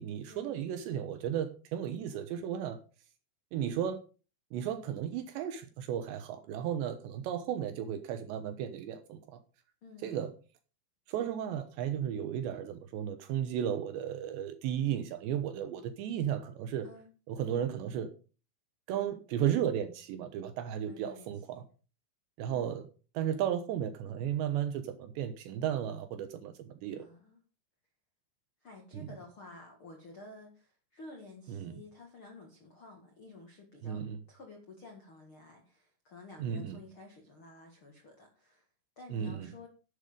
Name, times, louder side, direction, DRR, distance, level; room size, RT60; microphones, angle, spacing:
voice 1, 0.0-2.8 3.5-4.0 4.5-9.2 10.0-10.3 11.1-16.9 17.3-18.1 18.9-21.6 22.4-22.9 23.2-27.0 28.9-29.1 31.5-31.7 33.8-34.2 36.4-36.8 39.1-39.5, right 9 dB, 75° right, 2.7 m, -34 dB
voice 2, 9.8-10.3 16.8-17.1 20.9-21.6 22.5-22.7 26.9-27.4 28.6-38.7 38.9-39.7, left 2 dB, 85° left, 1.1 m, -52 dB
11.5 x 8.1 x 5.2 m
omnidirectional pair, 5.9 m